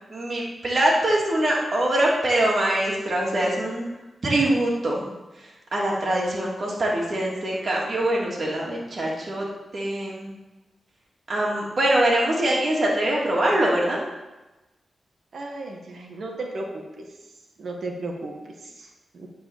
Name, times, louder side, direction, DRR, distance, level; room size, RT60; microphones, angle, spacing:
voice 1, 0.1-3.9 4.2-5.1 5.7-9.4 9.7-10.3 11.3-14.0, right 1 dB, 50° right, -3 dB, 3.0 m, -23 dB
voice 2, 15.3-17.0 17.6-19.3, right 2 dB, 70° right, 1 dB, 1.7 m, -35 dB
10.0 x 4.9 x 7.4 m, 1.1 s
cardioid pair, 65°, 0 cm